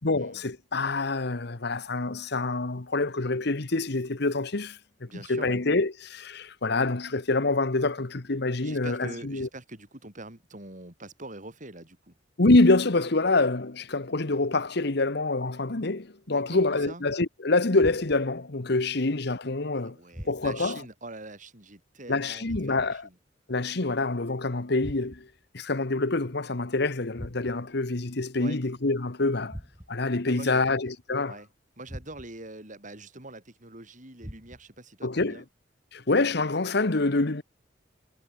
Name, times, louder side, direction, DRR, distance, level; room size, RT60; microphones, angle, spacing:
voice 1, 0.0-9.5 12.4-20.0 20.2-20.8 22.1-23.1 23.5-25.3 25.5-29.6 29.9-31.4 35.0-35.4 35.9-37.4, left 2 dB, 65° left, 1.3 m, -26 dB
voice 2, 5.1-5.6 8.6-12.1 16.3-17.0 19.7-23.2 28.4-28.6 30.3-30.6 31.3-31.5 31.8-35.4, right 2 dB, 45° right, 8.0 m, -44 dB
sound 1, 17.8-18.4 20.1-20.8 22.5-23.1 24.8-25.4 27.1-27.8 29.5-30.1 31.9-32.5 34.2-34.8, equal, 15° right, 6.9 m, -43 dB
head